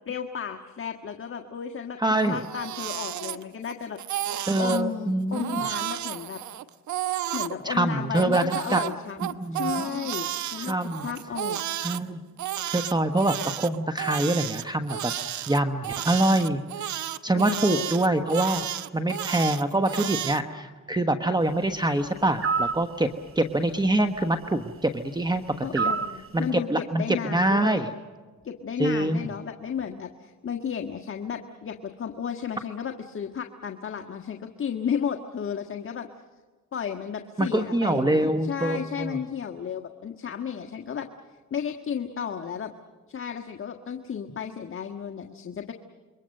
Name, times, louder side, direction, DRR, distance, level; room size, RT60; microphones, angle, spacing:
voice 1, 0.0-2.0 2.3-4.0 4.6-6.4 7.3-11.6 17.4-17.9 25.6-27.8 28.4-36.1 36.7-41.1 41.5-42.7 43.1-45.7, left 7 dB, 45° left, 4 dB, 1.5 m, -33 dB
voice 2, 2.0-2.4 4.5-5.7 7.6-8.8 9.2-10.0 10.7-11.1 11.8-12.2 12.7-15.1 15.5-16.6 17.2-18.7 18.9-23.1 23.4-25.9 26.3-27.9 28.8-29.3 37.4-39.2, right 1 dB, 15° right, 8 dB, 1.2 m, -25 dB
Crying sobbing, 2.3-3.7 4.0-4.8 5.3-7.5 8.1-12.0 12.4-20.4, right 12 dB, 70° right, 1.0 m, -32 dB
sound 1, 22.4-22.8 25.8-26.2, right 5 dB, 45° right, 1.2 m, -25 dB
28.0 x 23.5 x 6.6 m, 1.4 s
cardioid pair, 90°, 30 cm